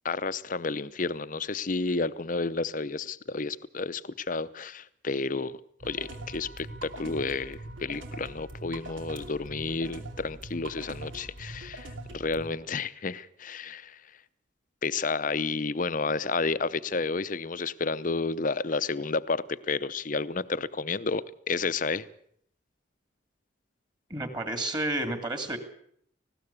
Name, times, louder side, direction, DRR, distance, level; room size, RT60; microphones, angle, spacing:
voice 1, 0.0-5.6 5.8-14.0 14.8-22.1, left 4 dB, 45° left, 0.7 m, -31 dB
sound 1, 5.8-12.5, right 1 dB, 90° right, 3.0 m, -42 dB
voice 2, 24.1-25.6, right 1 dB, 25° right, 2.6 m, -31 dB
19.5 x 16.0 x 8.4 m
head